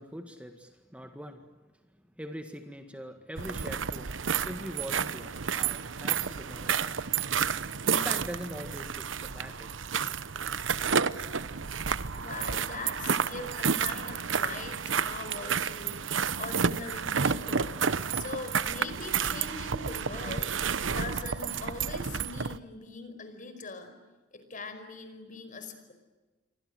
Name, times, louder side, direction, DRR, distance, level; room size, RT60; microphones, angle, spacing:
voice 1, 0.0-1.4 2.2-4.2 4.4-6.9 7.9-9.7, equal, 5° right, 6 dB, 1.9 m, -42 dB
sound 1, 3.4-22.6, right 6 dB, 90° right, 1.0 m, -31 dB
voice 2, 12.2-24.0 24.3-25.9, left 3 dB, 45° left, 9 dB, 5.0 m, -42 dB
28.5 x 24.5 x 7.8 m, 1.2 s
head